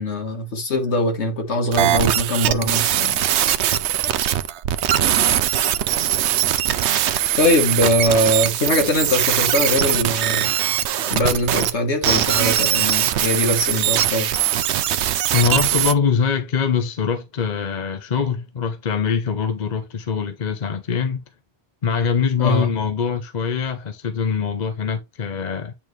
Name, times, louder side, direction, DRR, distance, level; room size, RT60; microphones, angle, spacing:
voice 1, 0.0-3.2 7.3-10.5 11.1-14.3 22.4-22.7, left 1 dB, 85° left, 1.8 m, -21 dB
sound 1, 1.7-11.7 12.0-15.9, right 11 dB, 80° right, 0.9 m, -21 dB
voice 2, 15.3-21.2 21.8-25.7, left 6 dB, 45° left, 0.8 m, -23 dB
8.7 x 4.1 x 3.1 m
omnidirectional pair, 1.1 m